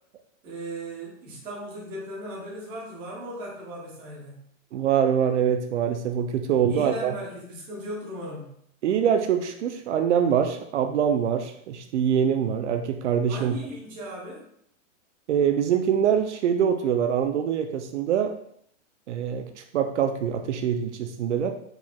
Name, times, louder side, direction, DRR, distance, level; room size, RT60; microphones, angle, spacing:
voice 1, 0.4-4.4 6.7-8.5 13.3-14.5, right 1 dB, 15° right, -5 dB, 0.6 m, -37 dB
voice 2, 4.7-7.1 8.8-13.6 15.3-18.4 19.1-21.5, right 8 dB, 65° right, 6 dB, 0.5 m, -24 dB
4.5 x 4.4 x 2.3 m, 0.69 s
supercardioid pair, 170°, 39 cm